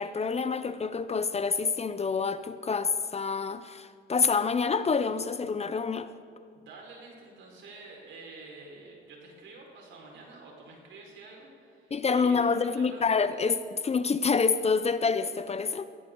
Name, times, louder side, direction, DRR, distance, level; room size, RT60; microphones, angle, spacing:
voice 1, 0.0-6.1 11.9-15.8, left 5 dB, 30° left, 12 dB, 0.7 m, -27 dB
voice 2, 6.5-13.1, right 3 dB, 75° right, -1 dB, 5.0 m, -48 dB
22.0 x 16.0 x 3.9 m, 2.3 s
cardioid pair, 90°, 20 cm